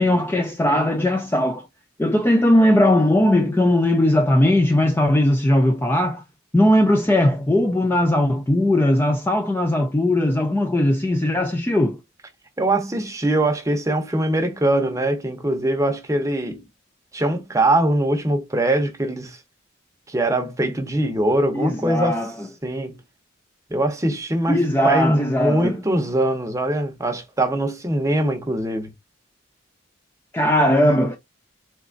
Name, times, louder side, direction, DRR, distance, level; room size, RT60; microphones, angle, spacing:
voice 1, 0.0-1.6 2.0-6.2 6.5-12.0 21.5-22.3 24.5-25.8 30.3-31.2, left 1 dB, 10° left, 0.3 m, -19 dB
voice 2, 12.6-16.6 17.1-19.4 20.1-22.2 22.6-23.0 23.7-24.6 24.8-28.9, right 1 dB, 15° right, 0.7 m, -22 dB
4.0 x 3.4 x 2.5 m
head